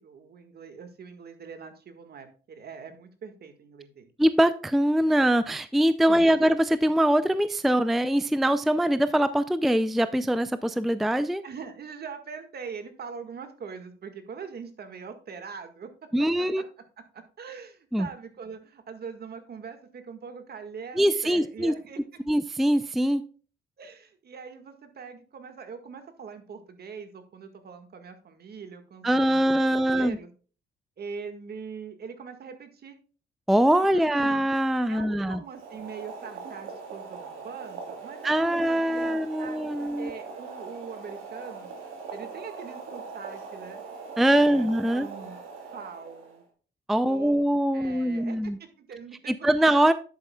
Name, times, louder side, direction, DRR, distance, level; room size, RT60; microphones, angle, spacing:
voice 1, 0.0-4.1 6.1-6.5 11.4-16.1 16.4-16.6 17.1-22.0 23.8-30.3 31.0-33.0 33.9-34.4 34.9-41.7 42.1-43.8 44.3-45.4 45.7-46.4 47.0-47.4 47.7-49.2, right 6 dB, 55° right, 8 dB, 1.8 m, -42 dB
voice 2, 4.2-11.4 16.1-16.6 17.9-18.1 21.0-21.7 22.3-23.2 29.0-30.2 33.5-35.4 38.2-40.1 44.2-45.1 46.9-48.6 49.3-49.9, right 1 dB, ahead, 13 dB, 0.4 m, -23 dB
Boiling, 35.4-46.4, right 5 dB, 90° right, 2.9 m, -41 dB
10.5 x 8.1 x 2.3 m, 0.38 s
cardioid pair, 90°, 20 cm